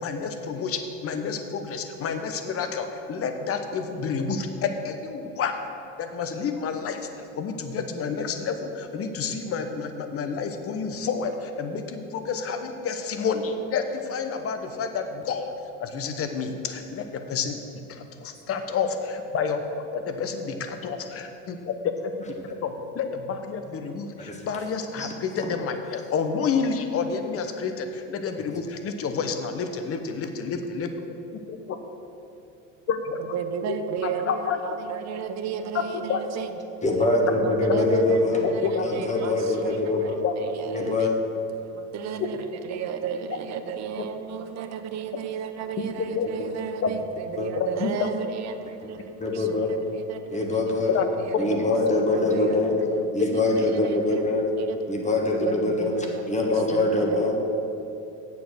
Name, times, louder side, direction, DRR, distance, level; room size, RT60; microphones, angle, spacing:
voice 1, 0.0-5.6 6.0-7.1 7.4-15.5 15.8-17.6 17.9-30.9 31.3-31.8 32.9-33.0 33.7-33.8 34.0-34.6 36.1-36.2 38.6-38.9 40.2-40.3 42.2-42.3 46.1-46.4 46.8-46.9 47.8-48.1 50.9-51.1, left 5 dB, 40° left, 7 dB, 1.0 m, -29 dB
voice 2, 33.3-50.8 51.1-53.1 53.5-54.2 54.6-54.9 55.3-57.3, right 7 dB, 45° right, 8 dB, 0.8 m, -34 dB
voice 3, 36.8-38.4 38.8-40.2 40.7-41.2 47.4-47.5 48.8-48.9 49.2-49.7 50.3-50.9 51.4-52.7 53.1-54.4 54.9-55.9 56.3-57.3, left 2 dB, 20° left, 1 dB, 1.4 m, -24 dB
8.3 x 7.0 x 6.5 m, 2.8 s
supercardioid pair, 105°, 37 cm